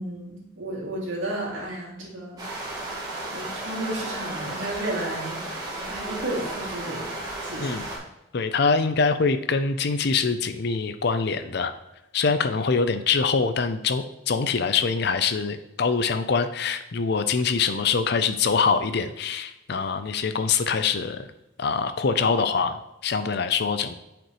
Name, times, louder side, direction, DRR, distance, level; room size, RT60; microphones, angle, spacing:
voice 1, 0.0-2.7 3.3-5.4 5.7-7.9, right 1 dB, 85° right, -4 dB, 2.5 m, -33 dB
sound 1, 2.4-8.0, right 2 dB, 20° right, 1.7 m, -34 dB
voice 2, 8.3-11.7 12.1-21.3 21.6-24.0, left 5 dB, 55° left, 10 dB, 0.5 m, -24 dB
8.9 x 5.1 x 3.1 m, 0.92 s
head